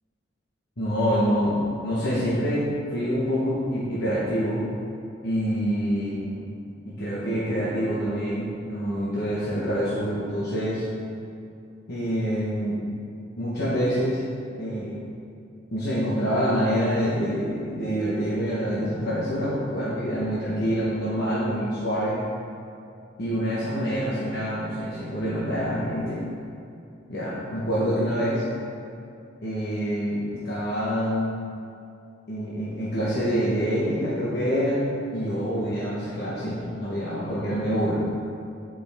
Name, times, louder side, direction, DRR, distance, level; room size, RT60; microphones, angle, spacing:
voice 1, 0.8-1.6 1.8-2.6 2.9-4.6 5.2-6.3 6.9-10.8 11.9-12.8 13.4-14.2 14.6-15.0 15.7-22.2 23.2-26.2 27.1-28.4 29.4-31.3 32.3-34.8 35.1-37.9, equal, 60° left, -9 dB, 1.2 m, -26 dB
9.0 x 5.1 x 3.5 m, 2.5 s
head